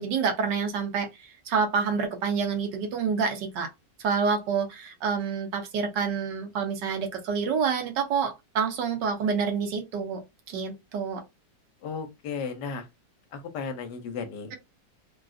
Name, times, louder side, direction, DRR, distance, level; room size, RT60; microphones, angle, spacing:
voice 1, 0.0-3.7 4.0-10.2 10.5-11.2, right 6 dB, 80° right, 1.5 m, -28 dB
voice 2, 11.8-12.8 13.3-14.6, left 5 dB, 75° left, 1.3 m, -34 dB
3.8 x 2.3 x 2.4 m
omnidirectional pair, 1.9 m